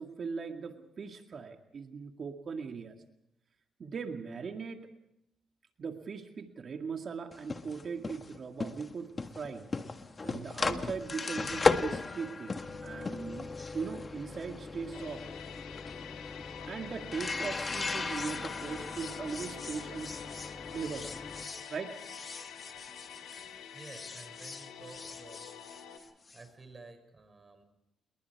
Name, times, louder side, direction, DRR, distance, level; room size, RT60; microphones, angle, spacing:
voice 1, 0.0-3.0 3.8-4.9 5.8-9.7 10.2-15.2 16.7-20.1 20.7-21.3 21.7-21.9, right 5 dB, 45° right, 5 dB, 2.1 m, -39 dB
sound 1, 7.3-23.5 23.8-26.4, left 4 dB, 30° left, 1.6 m, -37 dB
sound 2, 14.9-26.0, left 8 dB, 85° left, 2.9 m, -47 dB
voice 2, 23.7-25.5 26.3-27.6, right 3 dB, 30° right, 8 dB, 5.9 m, -52 dB
28.5 x 21.5 x 4.7 m, 0.82 s
cardioid pair, 90°, 0 cm